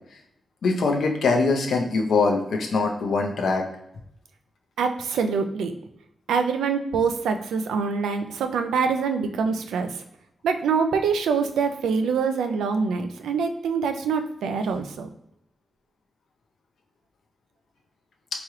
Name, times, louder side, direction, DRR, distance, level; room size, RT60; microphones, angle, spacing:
voice 1, 0.6-3.6, left 3 dB, 80° left, 2 dB, 0.6 m, -22 dB
voice 2, 4.8-5.7 6.3-10.0 10.4-15.1, right 5 dB, 90° right, 6 dB, 0.3 m, -25 dB
3.6 x 2.9 x 3.0 m, 0.80 s
supercardioid pair, 45°, 0 cm